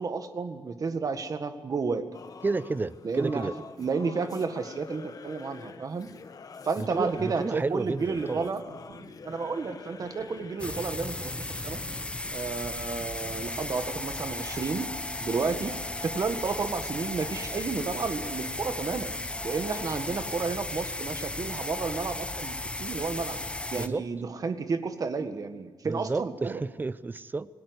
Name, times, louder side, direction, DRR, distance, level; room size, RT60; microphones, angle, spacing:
voice 1, 0.0-2.1 3.0-3.5 3.8-6.1 6.6-8.6 9.2-11.8 12.3-15.7 16.0-19.1 19.4-23.4 23.7-26.6, right 4 dB, 45° right, 9 dB, 1.7 m, -31 dB
Singing / Musical instrument, 2.1-11.0, left 5 dB, 45° left, 1.2 m, -46 dB
voice 2, 2.4-3.5 6.8-8.5 23.8-24.0 25.8-27.5, right 3 dB, 20° right, 16 dB, 0.6 m, -31 dB
sound 1, 8.4-14.1, right 5 dB, 65° right, 2.6 m, -52 dB
sound 2, 10.6-23.9, left 2 dB, 15° left, 0.9 m, -35 dB
27.0 x 19.0 x 8.2 m, 1.3 s
wide cardioid pair, 160°, 9 cm